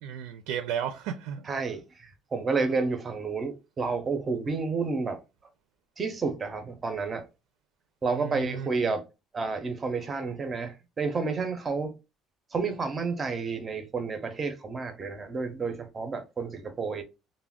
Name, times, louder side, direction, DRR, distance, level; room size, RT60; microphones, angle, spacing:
voice 1, 0.0-1.5 8.1-8.7, right 9 dB, 85° right, 0.4 m, -34 dB
voice 2, 1.5-5.2 6.0-7.3 8.0-9.0 9.3-11.9 12.5-17.0, right 4 dB, 20° right, 0.5 m, -30 dB
2.3 x 2.1 x 3.4 m
cardioid pair, 170°, 0 cm